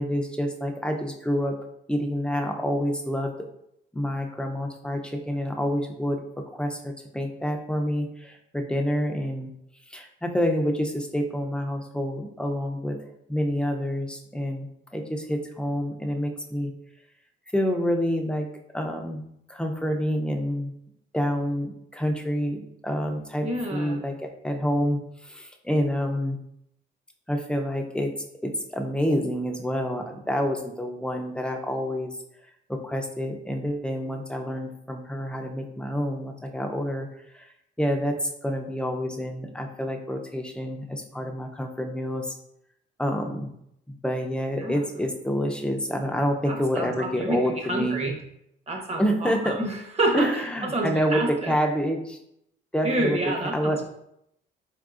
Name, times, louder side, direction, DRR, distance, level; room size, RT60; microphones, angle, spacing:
voice 1, 0.0-1.6 1.9-3.3 3.9-6.2 6.5-9.5 9.9-14.7 14.9-16.7 17.5-18.5 18.7-19.2 19.5-20.7 21.1-26.4 27.3-28.1 28.4-32.1 32.7-37.1 37.3-37.4 37.8-42.3 43.0-43.5 44.0-48.0 49.0-49.6 50.1-52.2 52.7-53.2 53.5-53.8, equal, 5° left, 2 dB, 0.5 m, -28 dB
voice 2, 23.4-24.0 44.6-44.8 46.5-48.2 48.7-50.3 50.7-51.6 52.8-53.8, right 1 dB, 30° right, 1 dB, 1.0 m, -28 dB
3.8 x 3.7 x 2.5 m, 0.77 s
cardioid pair, 90°, 20 cm